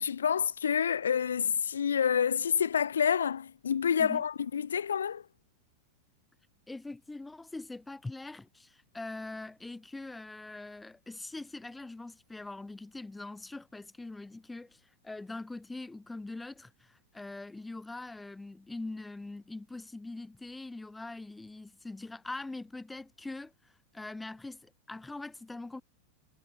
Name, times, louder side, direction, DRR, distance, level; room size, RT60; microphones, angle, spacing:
voice 1, 0.0-5.2, left 7 dB, 70° left, 0.4 m, -28 dB
voice 2, 6.7-25.8, left 2 dB, 5° left, 0.9 m, -43 dB
figure-of-eight pair, 90°, 0 cm